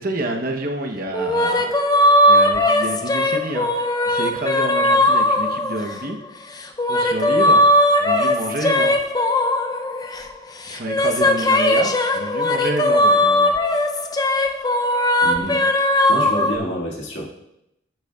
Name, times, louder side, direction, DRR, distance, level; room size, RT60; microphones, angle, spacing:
voice 1, 0.0-1.7 2.3-6.2 6.9-7.6 8.0-9.0 10.7-13.5, right 1 dB, 45° right, 3 dB, 0.8 m, -28 dB
sound 1, 1.1-6.1 6.6-10.3 10.6-16.6, left 1 dB, 20° left, 0.5 m, -18 dB
voice 2, 15.2-17.3, equal, 70° left, -3 dB, 1.8 m, -29 dB
10.5 x 7.9 x 2.3 m, 0.83 s
head